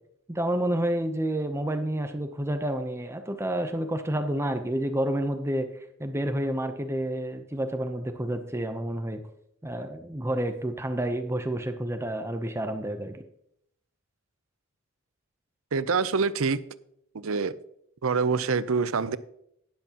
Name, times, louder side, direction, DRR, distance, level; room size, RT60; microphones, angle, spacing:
voice 1, 0.3-9.2 9.6-13.2, right 1 dB, 15° right, 0.7 m, -29 dB
voice 2, 15.7-16.6 17.1-17.5 18.0-19.2, right 5 dB, 80° right, 0.6 m, -25 dB
12.5 x 10.5 x 2.9 m
head